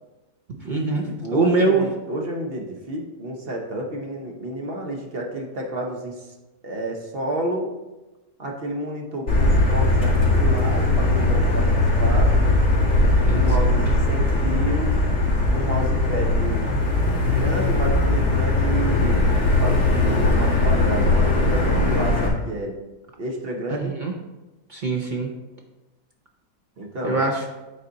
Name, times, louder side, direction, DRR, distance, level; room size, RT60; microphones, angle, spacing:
voice 1, 0.5-1.8 13.3-13.8 23.7-24.1 24.7-25.3 27.0-27.4, right 3 dB, 65° right, 0 dB, 0.4 m, -24 dB
voice 2, 1.1-6.3 6.6-7.7 8.4-12.5 13.3-15.0 15.5-16.7 17.3-22.8 23.2-24.0 26.8-27.2, right 1 dB, 45° right, 1 dB, 0.9 m, -30 dB
Motor vehicle (road), 9.3-22.3, left 2 dB, 45° left, 2.5 m, -19 dB
8.6 x 4.2 x 3.9 m, 1.1 s
omnidirectional pair, 1.9 m